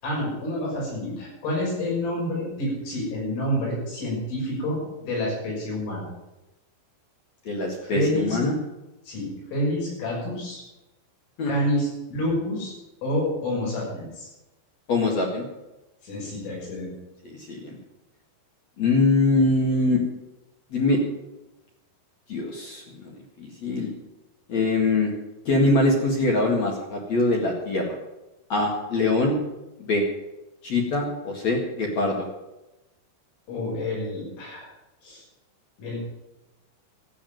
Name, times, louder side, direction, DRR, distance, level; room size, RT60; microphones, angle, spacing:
voice 1, 0.0-6.0 7.8-8.4 9.0-10.6 11.5-12.7 13.0-14.3 16.0-16.9 33.5-34.7 35.0-35.2 35.8-36.0, left 1 dB, 85° left, -4 dB, 8.6 m, -28 dB
voice 2, 7.5-8.5 11.4-11.5 14.9-15.5 17.5-17.8 18.8-20.0 20.7-21.0 22.3-23.1 23.4-23.9 24.5-25.1 25.5-28.0 28.5-29.3 29.8-30.0 30.6-32.3, left 2 dB, 50° left, 0 dB, 2.3 m, -23 dB
13.5 x 8.5 x 9.2 m, 0.98 s
omnidirectional pair, 5.6 m